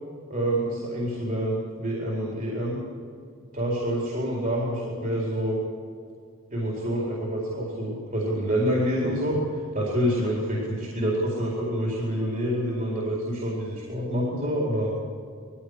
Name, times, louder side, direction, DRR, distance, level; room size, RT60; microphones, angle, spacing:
voice 1, 0.3-2.8 3.5-5.6 6.5-14.9, equal, 40° right, -4 dB, 4.5 m, -27 dB
21.0 x 16.0 x 8.3 m, 2.3 s
head